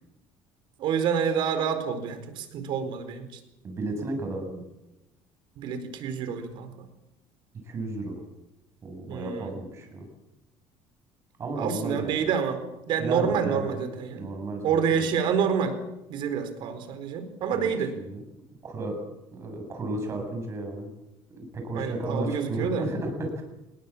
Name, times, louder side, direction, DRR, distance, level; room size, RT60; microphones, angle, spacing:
voice 1, 0.8-3.3 5.6-6.7 9.1-9.5 11.5-12.6 12.9-14.3 14.6-15.8 16.1-17.9 21.7-22.9, right 7 dB, 55° right, 9 dB, 4.6 m, -28 dB
voice 2, 3.6-4.6 7.6-8.2 8.8-10.1 11.4-12.3 13.0-13.9 14.1-15.1 17.6-18.2 18.6-19.0 19.3-20.9 21.4-23.4, right 2 dB, 30° right, 4 dB, 7.5 m, -33 dB
27.0 x 21.0 x 7.5 m, 0.95 s
cardioid pair, 170°, 10 cm